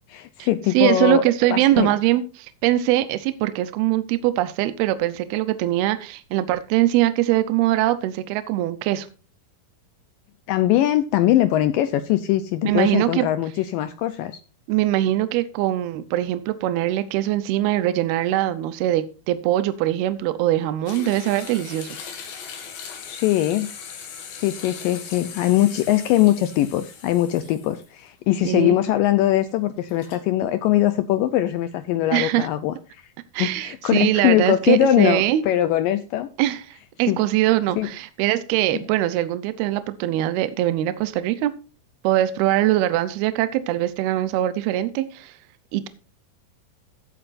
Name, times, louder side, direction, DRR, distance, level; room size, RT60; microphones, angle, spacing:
voice 1, 0.1-1.2 1.5-1.9 10.5-14.4 23.1-23.7 24.3-32.7 33.4-36.3 37.1-37.2 37.8-37.9 38.7-38.8, left 13 dB, 85° left, 11 dB, 1.9 m, -21 dB
voice 2, 0.7-9.1 12.6-13.3 14.7-22.0 28.4-28.8 32.1-32.5 33.3-35.4 36.4-41.5 42.0-45.3 45.7-45.9, right 14 dB, 80° right, 13 dB, 2.6 m, -22 dB
sound 1, 20.9-28.1 28.5-28.6 29.8-30.2, left 6 dB, 65° left, 3.6 m, -39 dB
16.0 x 8.5 x 2.6 m, 0.34 s
omnidirectional pair, 4.7 m